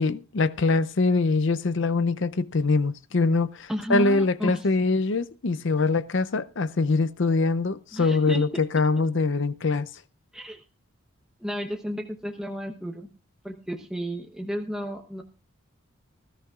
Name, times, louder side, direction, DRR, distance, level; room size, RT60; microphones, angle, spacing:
voice 1, 0.0-9.9, left 3 dB, 60° left, 0.6 m, -23 dB
voice 2, 3.7-4.6 7.9-8.4 10.3-10.6 11.4-13.1 13.4-15.2, equal, 5° right, 0.9 m, -32 dB
20.0 x 13.5 x 2.4 m
head